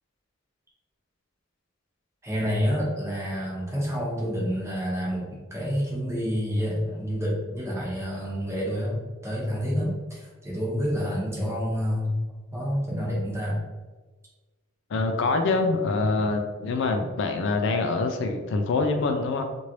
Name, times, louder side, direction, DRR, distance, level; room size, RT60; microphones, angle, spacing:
voice 1, 2.2-12.2 12.5-13.6, equal, 15° right, -6 dB, 0.9 m, -28 dB
voice 2, 14.9-19.4, left 3 dB, 60° left, 5 dB, 0.3 m, -25 dB
3.0 x 2.5 x 2.9 m, 1.3 s
head